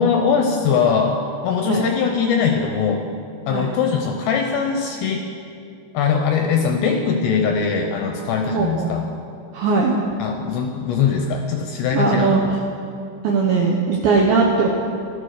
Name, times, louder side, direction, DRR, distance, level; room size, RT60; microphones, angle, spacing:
voice 1, 0.0-3.0 3.5-5.3 5.9-9.1 10.2-12.6, left 6 dB, 75° left, 3 dB, 2.7 m, -21 dB
voice 2, 8.5-8.9 9.5-10.0 11.9-12.6 13.2-14.7, right 4 dB, 75° right, -1 dB, 2.1 m, -19 dB
15.0 x 12.0 x 6.5 m, 2.6 s
omnidirectional pair, 5.6 m